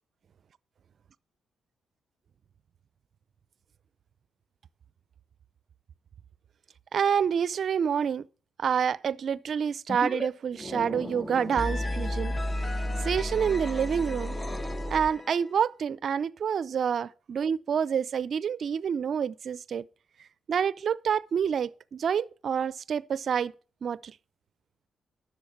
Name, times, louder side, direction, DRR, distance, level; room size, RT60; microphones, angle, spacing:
voice 1, 6.9-8.2 8.6-12.7 13.0-14.4 14.9-19.8 20.5-23.5 23.8-24.1, right 7 dB, 60° right, 0.5 m, -28 dB
sound 1, 9.9-10.3 10.5-15.5, left 1 dB, 25° left, 1.4 m, -32 dB
12.5 x 7.9 x 4.6 m
hypercardioid pair, 45°, 0 cm